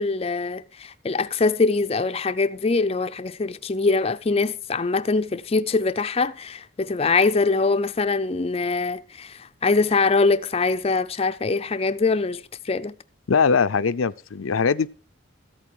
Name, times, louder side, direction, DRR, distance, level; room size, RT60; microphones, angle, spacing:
voice 1, 0.0-9.3 9.6-12.4 12.7-12.9, left 3 dB, 30° left, 0.5 m, -23 dB
voice 2, 13.3-14.9, left 5 dB, 85° left, 0.6 m, -21 dB
14.0 x 8.5 x 4.5 m
head